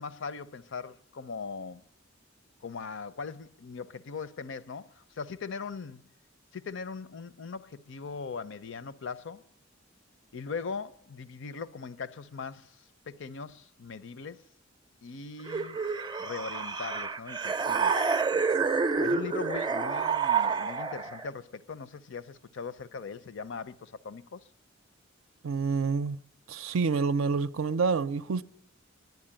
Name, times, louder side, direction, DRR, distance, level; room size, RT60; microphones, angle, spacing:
voice 1, 0.0-1.8 2.6-6.0 6.5-9.4 10.3-14.4 15.0-15.8 16.2-18.0 19.0-24.5, left 5 dB, 65° left, 0.6 m, -40 dB
sound 1, 15.5-21.3, right 5 dB, 20° right, 0.5 m, -28 dB
voice 2, 25.4-26.2 26.5-28.4, right 4 dB, 80° right, 0.5 m, -28 dB
11.0 x 10.5 x 8.8 m
head